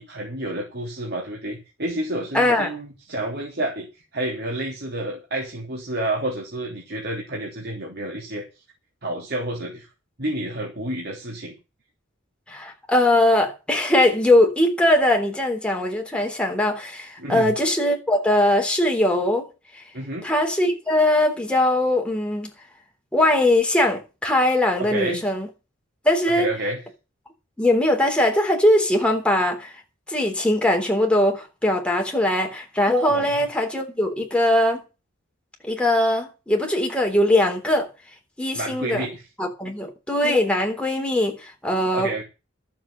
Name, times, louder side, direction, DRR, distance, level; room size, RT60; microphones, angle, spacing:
voice 1, 0.0-8.4 9.0-9.9 10.2-11.5 17.2-17.5 19.9-20.3 24.8-25.2 26.3-26.8 33.1-33.3 38.5-39.3 41.9-42.2, right 1 dB, 55° right, 3.2 m, -29 dB
voice 2, 2.3-2.7 12.5-19.5 20.2-22.5 23.1-25.5 26.0-26.5 27.6-29.7 30.1-34.8 35.6-37.9 38.4-39.1 39.4-42.1, left 1 dB, 5° left, 3.5 m, -21 dB
13.0 x 7.6 x 7.8 m
head